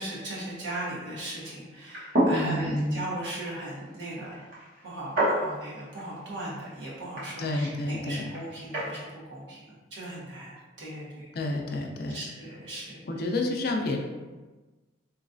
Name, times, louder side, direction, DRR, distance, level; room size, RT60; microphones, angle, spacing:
voice 1, 0.0-4.4 4.8-11.3 12.1-13.2, right 1 dB, 70° right, -6 dB, 1.2 m, -38 dB
sound 1, 1.8-8.9, right 1 dB, 55° right, 1.2 m, -32 dB
voice 2, 2.3-3.0 7.4-8.3 11.3-12.2 13.1-14.0, left 2 dB, 55° left, 2 dB, 0.4 m, -29 dB
3.8 x 3.1 x 2.5 m, 1.2 s
head